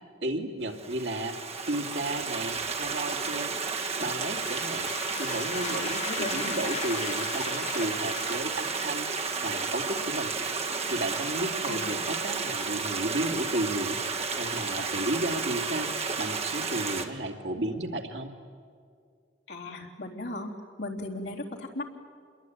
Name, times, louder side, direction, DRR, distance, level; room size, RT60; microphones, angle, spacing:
voice 1, 0.2-1.4 1.7-3.5 4.0-4.9 5.2-10.3 10.9-18.3, right 1 dB, 70° right, 3 dB, 2.5 m, -33 dB
Stream, 0.7-17.0, right 4 dB, 35° right, 1.9 m, -32 dB
sound 1, 4.0-9.1, left 6 dB, 35° left, 0.9 m, -38 dB
voice 2, 6.1-6.5 11.7-12.0 19.5-20.5 20.8-21.8, left 2 dB, 65° left, 0 dB, 3.6 m, -36 dB
27.5 x 22.0 x 9.4 m, 2.2 s
head